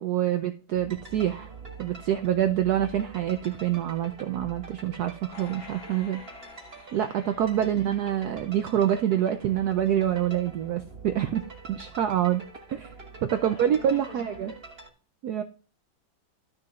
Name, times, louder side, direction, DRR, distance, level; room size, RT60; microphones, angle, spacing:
voice 1, 0.0-1.5 1.8-6.2 6.9-12.4 12.7-12.9 13.2-14.5 15.2-15.4, right 10 dB, 75° right, 8 dB, 0.9 m, -26 dB
sound 1, 0.7-14.9, right 4 dB, 30° right, 1.7 m, -45 dB
sound 2, 5.3-8.8 9.2-9.3, left 4 dB, 50° left, 0.9 m, -49 dB
voice 2, 7.6-8.1 13.4-14.6 15.4-15.5, left 1 dB, 75° left, 2 dB, 2.6 m, -46 dB
12.0 x 6.6 x 2.4 m, 0.35 s
omnidirectional pair, 2.2 m